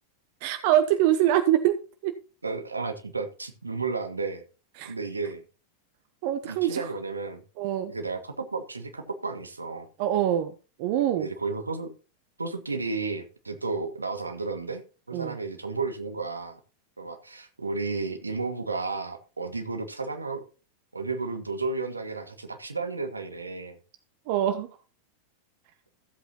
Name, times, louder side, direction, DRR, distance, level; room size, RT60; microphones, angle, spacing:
voice 1, 0.4-2.1 4.8-4.9 6.2-6.9 7.6-7.9 10.0-10.5 10.8-11.3 15.1-15.3 24.3-24.7, right 12 dB, 50° right, 0.9 m, -24 dB
voice 2, 2.4-4.4 4.8-5.4 6.4-7.4 7.9-9.9 11.2-11.9 12.4-14.8 15.1-16.6 17.0-20.4 20.9-23.8, right 3 dB, 80° right, 1.5 m, -32 dB
15.0 x 8.1 x 2.9 m
figure-of-eight pair, 90°, 0 cm